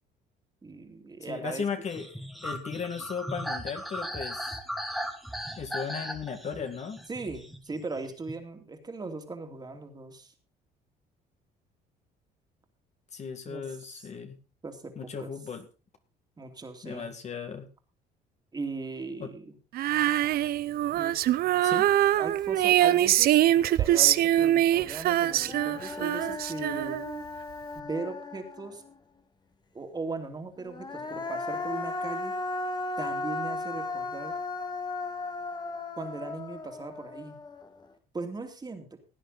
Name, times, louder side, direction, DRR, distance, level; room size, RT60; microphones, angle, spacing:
voice 1, 0.6-1.7 7.1-10.3 13.5-14.1 14.6-15.3 16.4-17.1 18.5-19.6 20.9-21.2 22.2-23.4 23.8-27.0 27.7-28.8 29.7-32.3 33.0-34.4 36.0-37.4 38.1-39.0, right 3 dB, 25° right, 5 dB, 2.6 m, -38 dB
voice 2, 1.3-2.1 2.4-4.6 5.6-7.0 13.1-14.4 15.0-15.7 16.8-17.7 19.2-19.3 21.6-21.9, left 6 dB, 40° left, 7 dB, 2.0 m, -36 dB
sound 1, 1.9-8.4, equal, ahead, 1.6 m, -37 dB
Female singing, 19.7-27.2, right 13 dB, 65° right, 0.6 m, -24 dB
Human voice, 24.8-24.9 25.3-28.9 30.6-37.9, left 3 dB, 25° left, 1.7 m, -36 dB
17.0 x 9.6 x 4.0 m, 0.31 s
cardioid pair, 110°, 17 cm